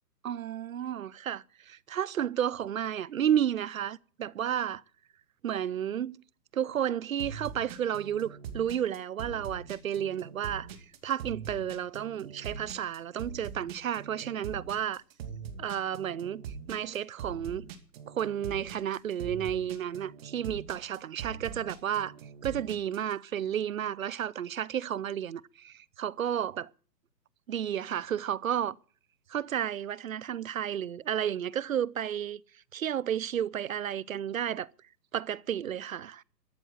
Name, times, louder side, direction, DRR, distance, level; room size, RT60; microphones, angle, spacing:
voice 1, 0.2-4.8 5.4-6.2 6.5-10.7 11.0-15.0 15.6-16.4 16.7-17.7 18.1-22.1 22.4-26.7 27.5-28.8 29.3-32.4 32.7-34.7 35.1-36.2, right 9 dB, 55° right, 0.7 m, -32 dB
sound 1, 7.2-23.1, right 6 dB, 35° right, 2.4 m, -42 dB
14.0 x 10.0 x 9.2 m
figure-of-eight pair, 135°, 49 cm